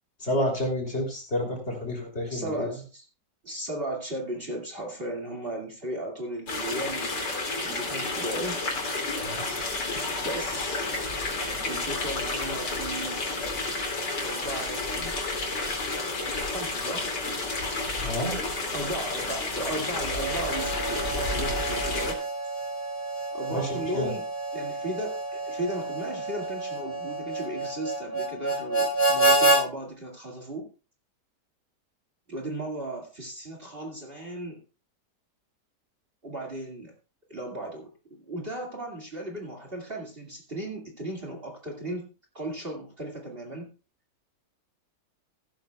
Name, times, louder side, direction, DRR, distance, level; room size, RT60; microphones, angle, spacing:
voice 1, 0.2-2.7 9.2-9.8 18.0-18.4 23.5-24.1, left 1 dB, 35° left, 1 dB, 3.4 m, -30 dB
voice 2, 2.3-3.0 3.4-7.2 7.6-8.6 9.9-10.8 11.6-13.2 14.2-15.2 16.4-17.1 18.7-22.2 23.3-24.2 24.5-30.7 32.3-34.6 36.2-36.9 37.3-42.1 42.3-43.7, right 1 dB, 35° right, 0 dB, 2.4 m, -36 dB
sound 1, 6.5-22.1, left 3 dB, 80° left, 3.2 m, -31 dB
Harmonica, 20.1-29.6, right 2 dB, 10° left, 4.8 m, -28 dB
15.0 x 12.5 x 2.3 m, 0.34 s
omnidirectional pair, 1.8 m